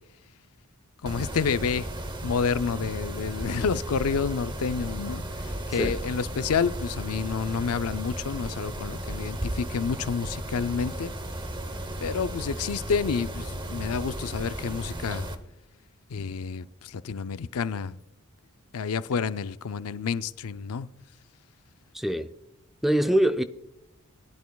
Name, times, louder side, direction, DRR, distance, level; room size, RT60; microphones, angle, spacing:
voice 1, 1.0-1.9 2.2-11.1 12.0-15.3 16.1-18.0 18.7-20.9, left 6 dB, 75° left, 0.5 m, -29 dB
Mechanisms, 1.0-15.3, right 1 dB, 20° right, 0.9 m, -35 dB
voice 2, 21.9-22.3 22.8-23.4, right 1 dB, ahead, 0.4 m, -24 dB
21.0 x 10.5 x 2.3 m
head